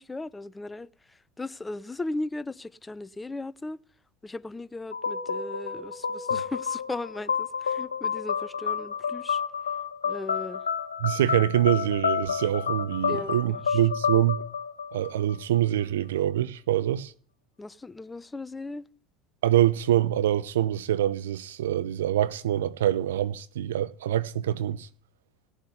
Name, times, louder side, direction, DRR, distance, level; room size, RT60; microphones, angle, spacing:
voice 1, 0.0-3.8 4.2-9.4 10.0-10.6 13.1-13.8 14.1-14.2 17.6-18.8, left 2 dB, 15° left, 0.9 m, -37 dB
sound 1, 4.9-15.6, left 6 dB, 90° left, 1.3 m, -30 dB
voice 2, 11.0-14.4 14.9-17.1 19.4-24.9, right 12 dB, 80° right, 0.9 m, -25 dB
17.5 x 7.3 x 9.8 m
hypercardioid pair, 75°, 0 cm